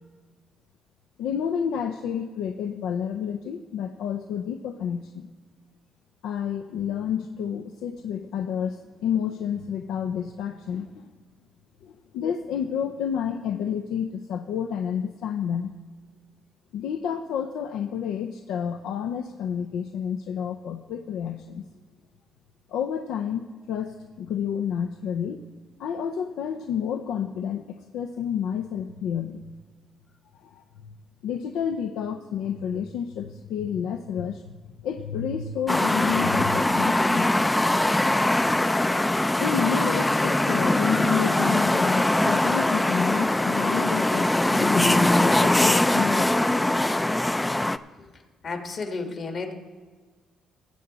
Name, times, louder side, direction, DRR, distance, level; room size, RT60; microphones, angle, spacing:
voice 1, 1.2-5.3 6.2-11.1 11.8-15.7 16.7-21.6 22.7-25.4 25.8-29.5 30.4-30.9 31.2-34.5 34.8-37.3 39.4-46.4, left 8 dB, 85° left, 5 dB, 0.5 m, -30 dB
sound 1, 35.7-47.8, left 1 dB, 10° left, 0.4 m, -22 dB
voice 2, 48.4-49.5, left 4 dB, 50° left, 5 dB, 1.6 m, -32 dB
19.0 x 7.8 x 4.0 m, 1.5 s
cardioid pair, 90°, 0 cm